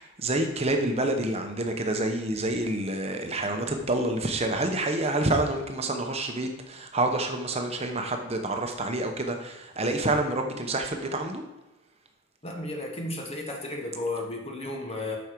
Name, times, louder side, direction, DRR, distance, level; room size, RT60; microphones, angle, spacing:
voice 1, 0.0-11.4, right 2 dB, 30° right, 4 dB, 0.9 m, -28 dB
voice 2, 12.4-15.2, left 2 dB, 30° left, 2 dB, 1.2 m, -33 dB
8.6 x 6.3 x 4.6 m, 1.0 s
head